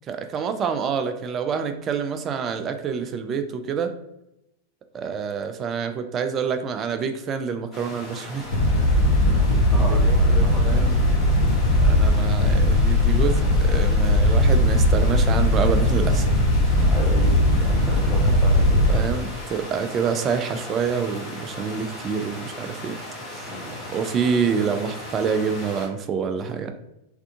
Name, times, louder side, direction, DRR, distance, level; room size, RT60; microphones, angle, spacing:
voice 1, 0.1-3.9 4.9-8.5 9.8-10.9 11.8-16.3 18.9-23.0 23.3-23.5 23.9-26.7, right 6 dB, 30° right, 7 dB, 0.3 m, -27 dB
sound 1, 7.7-25.9, left 1 dB, 25° left, 1.2 m, -37 dB
sound 2, 8.4-19.1, left 1 dB, 60° left, 0.7 m, -19 dB
voice 2, 9.7-11.0 16.8-19.1 23.4-23.9, equal, ahead, -4 dB, 0.9 m, -35 dB
3.3 x 2.6 x 2.4 m, 0.87 s
figure-of-eight pair, 90°, 0 cm